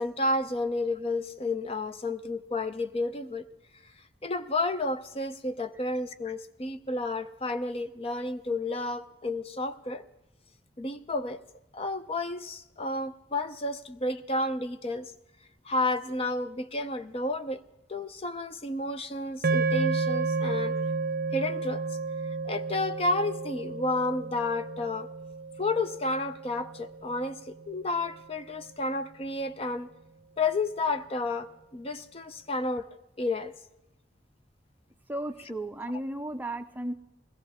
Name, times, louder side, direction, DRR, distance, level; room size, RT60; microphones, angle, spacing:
voice 1, 0.0-3.5 4.2-10.0 10.8-11.4 11.7-15.1 15.6-17.6 17.9-20.7 21.3-21.8 22.4-25.1 25.6-29.9 30.4-32.9 33.2-33.5, left 2 dB, 35° left, 9 dB, 0.6 m, -31 dB
sound 1, 19.4-27.8, right 4 dB, 55° right, 0.7 m, -32 dB
voice 2, 35.1-36.9, right 1 dB, 10° right, 8 dB, 0.5 m, -34 dB
21.0 x 16.5 x 3.5 m, 0.94 s
head